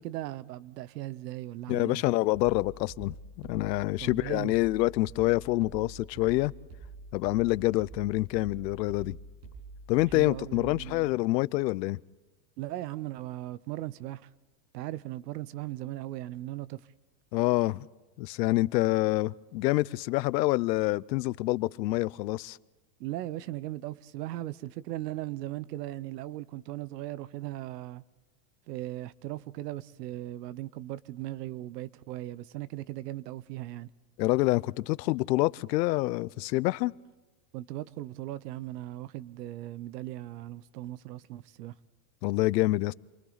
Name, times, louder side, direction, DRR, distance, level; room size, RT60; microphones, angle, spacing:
voice 1, 0.0-2.0 4.0-4.5 10.1-11.1 12.6-14.3 14.7-16.8 23.0-28.0 28.7-33.9 37.5-41.7, right 15 dB, 75° right, 0.9 m, -38 dB
voice 2, 1.7-6.5 7.1-9.2 9.9-12.0 17.3-17.9 18.2-22.6 34.2-36.9 42.2-42.9, left 19 dB, 85° left, 0.7 m, -27 dB
sound 1, 2.3-11.0, right 3 dB, 50° right, 7.8 m, -47 dB
28.5 x 23.5 x 4.0 m
supercardioid pair, 175°, 49 cm